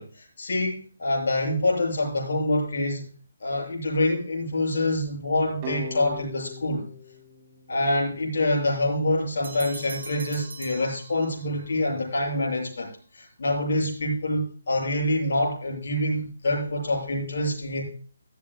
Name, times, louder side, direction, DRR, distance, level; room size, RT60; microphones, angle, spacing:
voice 1, 0.0-3.1 3.4-6.8 7.7-17.8, left 1 dB, 60° left, -1 dB, 7.2 m, -26 dB
sound 1, 5.6-8.4, equal, 25° right, 2.7 m, -40 dB
Bell, 9.4-11.7, right 5 dB, 60° right, 2.7 m, -41 dB
15.0 x 13.5 x 2.4 m, 0.42 s
figure-of-eight pair, 145°, 0 cm